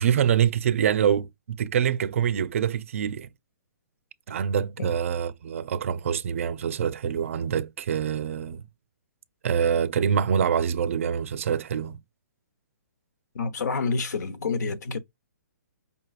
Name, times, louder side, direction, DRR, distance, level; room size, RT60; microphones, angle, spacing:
voice 1, 0.0-3.3 4.3-8.6 9.4-12.0, right 8 dB, 50° right, 0.5 m, -25 dB
voice 2, 13.3-15.0, left 4 dB, 70° left, 1.0 m, -28 dB
5.2 x 3.1 x 2.4 m
hypercardioid pair, 170°, 10 cm